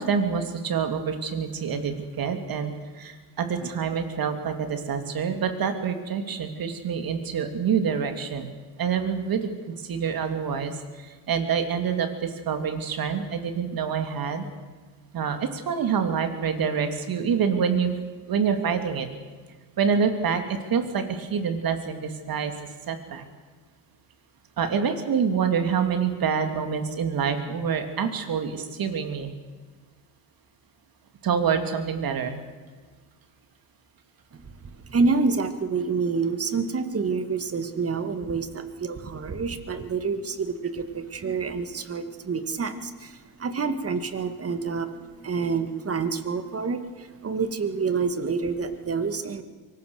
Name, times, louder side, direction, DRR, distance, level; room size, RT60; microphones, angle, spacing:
voice 1, 0.0-8.5 8.8-14.5 15.1-17.9 18.3-19.1 19.8-22.5 22.9-23.2 24.6-29.3 31.2-32.4 36.4-36.7 38.6-38.7, right 6 dB, 50° right, 6 dB, 3.2 m, -26 dB
voice 2, 34.8-49.4, right 4 dB, 30° right, 9 dB, 2.1 m, -28 dB
23.5 x 19.5 x 6.7 m, 1.4 s
supercardioid pair, 95°, 46 cm